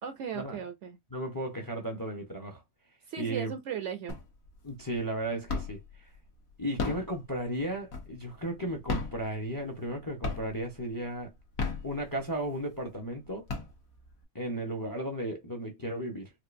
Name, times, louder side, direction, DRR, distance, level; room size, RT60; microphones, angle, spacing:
voice 1, 0.0-1.0 3.1-4.2, right 8 dB, 65° right, 0.8 m, -37 dB
voice 2, 1.1-2.6 3.2-3.5 4.6-5.8 6.6-11.3 11.8-13.5 14.3-16.3, right 1 dB, 20° left, 0.6 m, -35 dB
sound 1, 4.1-4.6 4.9-5.9 6.6-8.4 8.8-9.9 10.2-10.8 11.4-12.4 12.9-13.0 13.3-14.2, left 4 dB, 75° left, 1.4 m, -35 dB
4.5 x 2.3 x 2.5 m
omnidirectional pair, 1.5 m